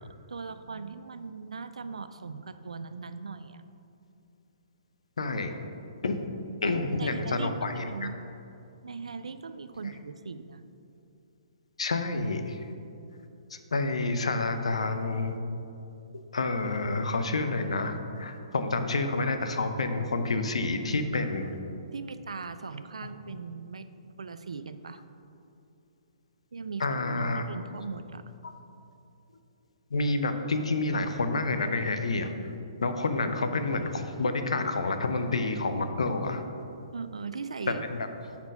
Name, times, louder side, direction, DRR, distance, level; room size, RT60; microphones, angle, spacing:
voice 1, 0.0-3.6 6.6-8.2 8.8-10.6 21.9-25.0 26.5-26.9 27.1-28.2 36.9-37.8, right 4 dB, 75° right, 11 dB, 0.3 m, -39 dB
voice 2, 5.2-5.5 6.0-6.3 6.6-8.1 11.8-12.7 13.5-15.4 16.1-21.5 26.8-27.4 28.4-28.5 29.9-32.5 32.8-36.4, left 3 dB, 75° left, 7 dB, 0.6 m, -29 dB
6.0 x 4.2 x 5.3 m, 2.7 s
figure-of-eight pair, 130°, 3 cm